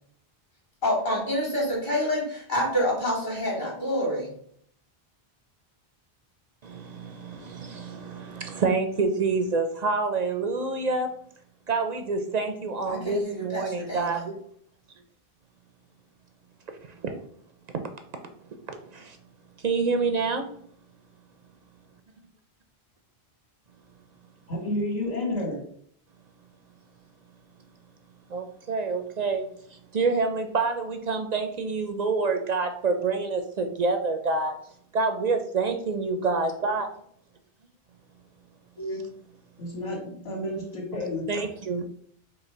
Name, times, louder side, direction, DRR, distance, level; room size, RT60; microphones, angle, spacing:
voice 1, 0.8-4.3 12.9-14.2, equal, 50° left, -4 dB, 2.2 m, -27 dB
voice 2, 6.6-11.2 11.7-14.4 16.9-17.2 17.7-17.8 18.7-19.2 19.6-20.5 28.3-34.6 34.9-36.9 41.3-41.9, right 4 dB, 55° right, 6 dB, 0.5 m, -27 dB
voice 3, 24.5-25.6 38.8-39.0 39.6-41.2, left 1 dB, 90° left, -3 dB, 2.1 m, -30 dB
5.4 x 2.1 x 4.4 m, 0.63 s
omnidirectional pair, 1.0 m